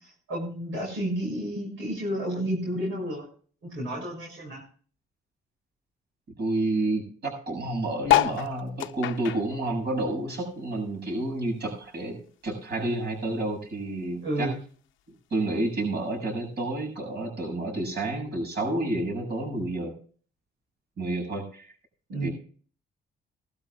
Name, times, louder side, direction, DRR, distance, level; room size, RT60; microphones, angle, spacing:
voice 1, 0.0-3.3 3.7-4.6 14.2-14.6 22.1-22.3, right 1 dB, 85° right, -1 dB, 6.5 m, -31 dB
voice 2, 6.4-14.5 15.3-19.9 21.0-21.7 22.2-22.3, right 2 dB, 55° right, 1 dB, 7.5 m, -30 dB
sound 1, 8.0-10.8 11.1-12.7 13.1-13.2 13.4-13.5 13.7-14.1 14.9-15.0, left 13 dB, 80° left, 0.8 m, -28 dB
20.5 x 12.5 x 2.4 m, 0.44 s
cardioid pair, 90°, 20 cm